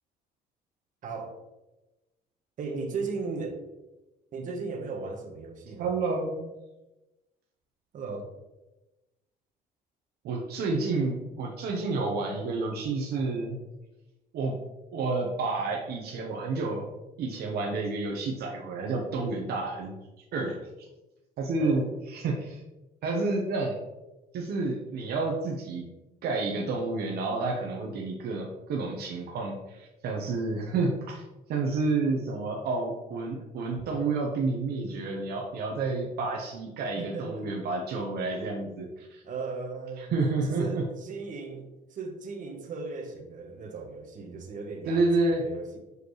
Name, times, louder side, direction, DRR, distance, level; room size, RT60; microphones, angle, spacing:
voice 1, 1.0-1.4 2.6-3.6 4.3-5.9 7.9-8.3 21.6-21.8 37.0-37.5 39.2-40.1 40.4-45.8, right 4 dB, 50° right, 3 dB, 1.2 m, -37 dB
voice 2, 5.8-6.5 10.2-13.6 14.3-14.6 14.9-16.9 17.2-19.9 20.3-20.6 21.4-21.8 22.1-22.6 23.0-23.8 24.3-25.8 26.2-31.2 31.5-39.2 40.0-40.8 44.9-45.4, right 3 dB, 70° right, 0 dB, 0.9 m, -29 dB
6.6 x 4.9 x 3.1 m, 1.1 s
cardioid pair, 110°, 17 cm